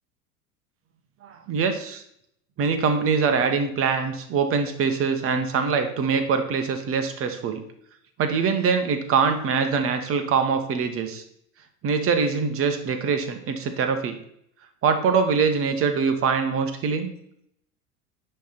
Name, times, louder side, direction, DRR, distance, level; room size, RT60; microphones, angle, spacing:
voice 1, 1.2-2.0 2.6-7.6 8.2-11.2 11.8-14.2 14.8-17.1, right 5 dB, 30° right, 7 dB, 1.2 m, -23 dB
10.0 x 3.4 x 5.9 m, 0.73 s
figure-of-eight pair, 80°, 44 cm